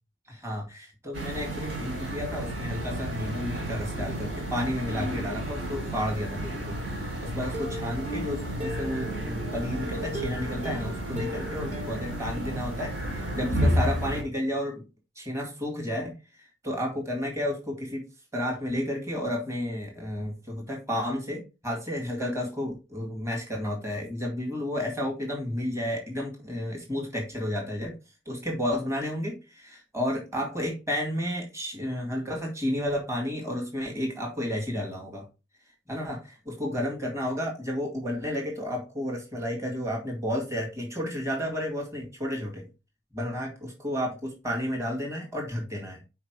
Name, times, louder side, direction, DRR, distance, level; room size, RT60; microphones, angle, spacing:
voice 1, 0.3-14.8 15.2-18.0 18.3-27.9 28.3-35.2 35.9-36.2 36.5-42.7 43.1-46.0, equal, 15° right, 0 dB, 2.1 m, -32 dB
sound 1, 1.1-14.2, equal, 70° right, 3.7 m, -32 dB
Plucked string instrument, 7.5-9.5 10.1-12.9 13.3-13.4 13.7-13.8, equal, 35° right, 2.7 m, -39 dB
5.8 x 4.8 x 4.6 m, 0.29 s
head